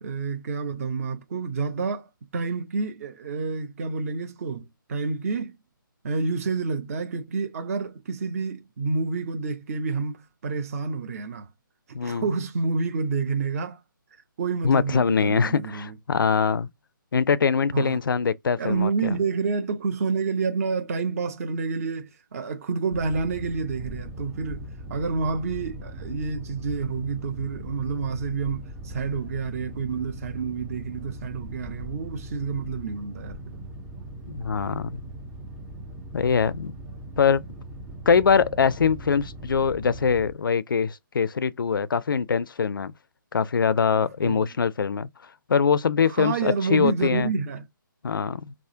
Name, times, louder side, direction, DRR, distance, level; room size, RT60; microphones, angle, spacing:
voice 1, 0.0-5.6 6.0-11.5 11.9-13.8 14.4-15.9 17.7-18.0 18.6-33.6 44.2-44.5 46.1-47.7, right 4 dB, 45° right, 0.8 m, -29 dB
voice 2, 11.9-12.2 14.6-16.7 17.1-18.9 34.3-35.0 36.1-36.7 37.2-37.4 38.1-42.9 43.3-45.1 45.5-47.3 48.0-48.5, left 6 dB, 75° left, 0.4 m, -23 dB
Boat Water vehicle, 22.9-40.3, right 1 dB, 5° right, 0.4 m, -40 dB
3.5 x 2.1 x 2.7 m
figure-of-eight pair, 150°, 11 cm